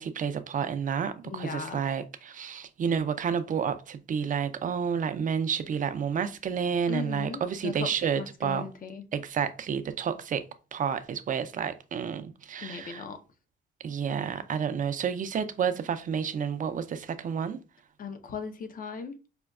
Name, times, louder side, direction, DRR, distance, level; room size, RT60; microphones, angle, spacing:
voice 1, 0.0-8.6 9.1-10.4 10.7-13.0 13.8-17.6, right 7 dB, 40° right, 0.5 m, -30 dB
voice 2, 1.2-1.8 6.9-9.1 12.6-13.2 18.0-19.2, left 5 dB, 45° left, 0.6 m, -38 dB
5.0 x 2.2 x 2.3 m
cardioid pair, 90°, 20 cm